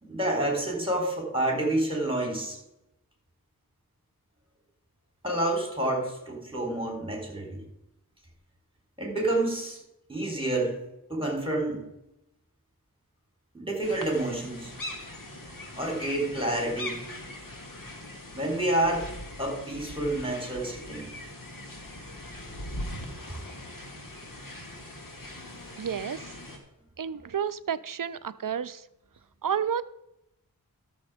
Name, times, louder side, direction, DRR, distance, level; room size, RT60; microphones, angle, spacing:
voice 1, 0.0-2.6 5.2-7.6 9.0-9.8 10.1-10.8 11.1-11.8 13.5-14.7 15.8-17.0 18.3-21.1 27.1-27.2, right 1 dB, 15° right, 1 dB, 4.3 m, -29 dB
sound 1, 13.8-26.6, left 1 dB, 60° left, 2.1 m, -41 dB
voice 2, 25.8-26.4 27.0-28.9 29.4-29.8, right 8 dB, 60° right, 15 dB, 0.6 m, -31 dB
12.5 x 7.0 x 5.0 m, 0.85 s
wide cardioid pair, 45°, 36 cm